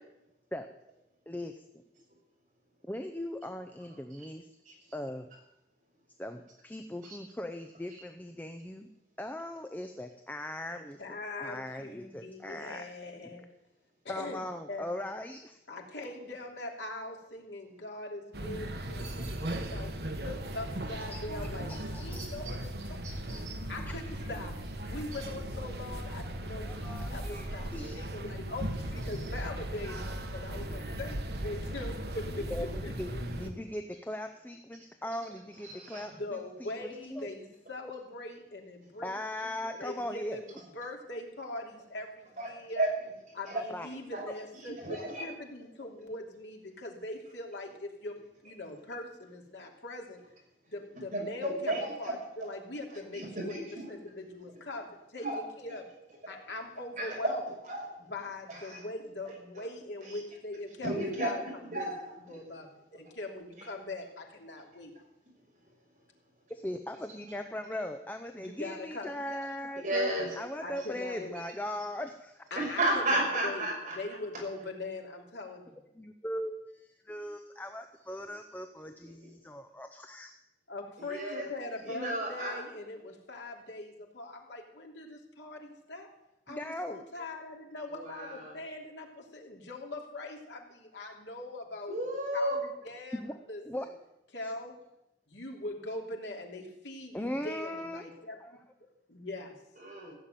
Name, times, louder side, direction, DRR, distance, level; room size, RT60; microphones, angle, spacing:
voice 1, 2.9-4.5 4.9-5.3 6.2-8.9 9.2-12.9 14.1-15.6 21.7-22.2 26.6-28.1 32.5-32.6 33.0-37.3 39.0-40.4 43.5-43.9 66.5-70.1 70.4-72.4 76.0-80.3 86.5-87.0 93.1-93.3 93.6-93.9 97.1-98.1 98.4-98.5, left 1 dB, 10° left, 7 dB, 0.6 m, -39 dB
voice 2, 10.7-13.4 14.0-15.0 15.7-21.7 22.0-23.0 23.7-24.5 24.9-30.0 30.3-33.2 36.1-39.1 39.4-42.8 43.3-48.2 48.4-50.2 50.7-53.6 53.9-55.8 56.3-57.4 58.1-61.9 62.3-64.9 68.4-69.1 70.6-71.3 72.5-73.7 73.9-75.7 80.7-86.1 86.5-91.9 92.3-93.2 93.5-93.9 94.3-94.8 95.3-98.6 99.1-99.5, left 2 dB, 85° left, 1 dB, 2.9 m, -42 dB
sound 1, 18.3-33.5, right 1 dB, 65° right, 1.4 m, -37 dB
voice 3, 23.0-23.5 26.3-26.4 35.6-36.0 42.4-42.5 42.8-42.9 43.5-43.6 44.1-44.2 44.8-45.3 51.1-52.5 52.9-53.9 55.2-55.4 57.0-57.9 58.5-58.8 59.5-59.7 60.0-60.1 60.8-61.4 61.7-62.1 63.6-63.7 69.8-70.4 70.8-70.9 72.5-74.0 81.0-81.5 81.8-82.6 87.9-88.6 91.9-92.6 99.8-100.1, right 1 dB, 45° right, -2 dB, 6.1 m, -33 dB
15.5 x 7.2 x 9.1 m, 0.86 s
head